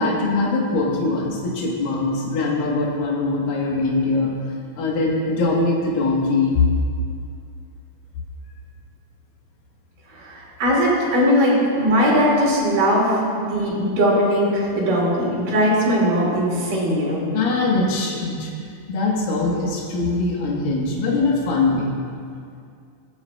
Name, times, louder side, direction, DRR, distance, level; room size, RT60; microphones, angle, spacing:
voice 1, 0.0-4.3 4.8-6.6 17.3-18.5 18.9-21.9, left 3 dB, 85° left, -3 dB, 3.0 m, -22 dB
voice 2, 10.1-17.3, equal, 75° right, -7 dB, 4.1 m, -19 dB
21.5 x 7.8 x 2.2 m, 2.3 s
omnidirectional pair, 3.9 m